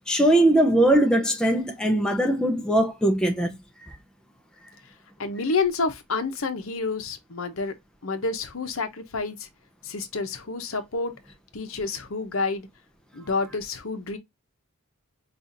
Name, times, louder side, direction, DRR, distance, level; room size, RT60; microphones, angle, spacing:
voice 1, 0.1-3.5, right 1 dB, 5° left, 0.5 m, -20 dB
voice 2, 5.2-7.7 8.0-9.5 9.8-11.1 11.5-12.7 13.1-14.2, left 4 dB, 65° left, 0.8 m, -29 dB
5.4 x 2.4 x 2.6 m
head